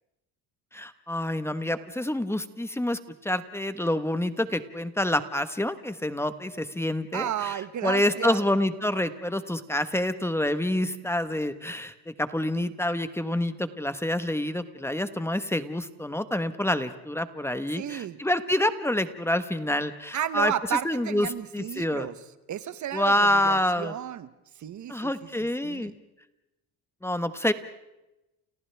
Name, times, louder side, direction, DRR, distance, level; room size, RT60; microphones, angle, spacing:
voice 1, 0.7-20.5 20.8-21.3 21.5-22.1 22.9-23.9 24.9-25.9 27.0-27.5, left 1 dB, 5° left, 10 dB, 1.2 m, -27 dB
voice 2, 7.1-8.4 17.7-18.2 20.1-22.1 22.5-24.3 24.6-25.1 25.6-25.9, right 10 dB, 45° right, 14 dB, 1.0 m, -33 dB
29.5 x 29.5 x 3.4 m, 0.94 s
cardioid pair, 115°, 40 cm